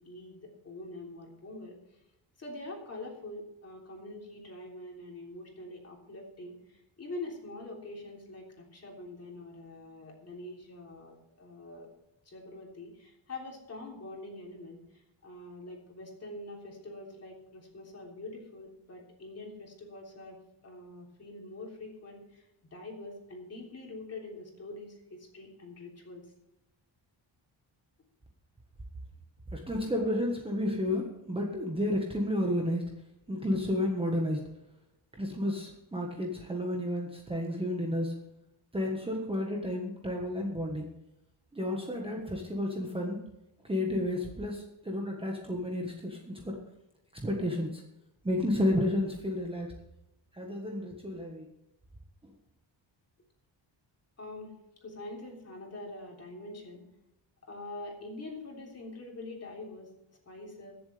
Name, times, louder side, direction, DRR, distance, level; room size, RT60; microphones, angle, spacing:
voice 1, 0.0-2.0 2.4-11.9 12.2-26.3 54.2-54.5 54.8-56.9 57.4-59.9 60.2-60.7, left 2 dB, 30° left, -1 dB, 3.4 m, -45 dB
voice 2, 29.5-32.8 33.3-34.4 35.1-38.1 38.7-40.9 41.5-43.2 43.6-46.6 47.1-47.8 48.2-49.7 50.3-51.5 52.2-52.3, left 1 dB, 10° right, 0 dB, 1.5 m, -31 dB
22.5 x 7.7 x 3.4 m, 0.90 s
wide cardioid pair, 150°, 47 cm